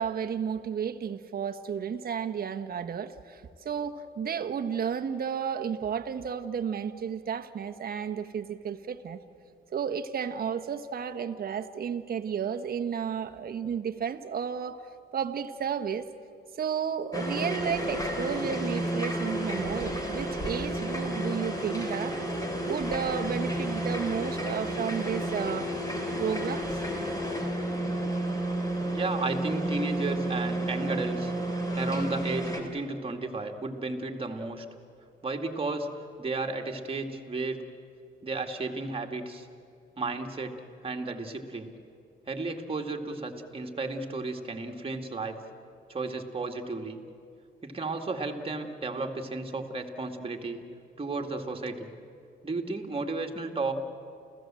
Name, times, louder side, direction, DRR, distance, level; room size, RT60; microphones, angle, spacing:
voice 1, 0.0-9.2 9.7-14.9 15.1-16.1 16.6-25.7 26.2-26.7, right 7 dB, 50° right, 6 dB, 1.3 m, -32 dB
sound 1, 17.1-32.6, right 1 dB, 15° left, 4.0 m, -31 dB
voice 2, 28.9-34.7 35.2-35.9 36.2-37.6 38.2-39.5 40.0-40.6 40.8-41.7 42.3-45.4 45.9-47.0 47.6-50.7 51.0-51.9 52.4-53.7, right 3 dB, 30° right, 3 dB, 2.3 m, -33 dB
29.5 x 16.0 x 7.6 m, 2.4 s
cardioid pair, 90°, 20 cm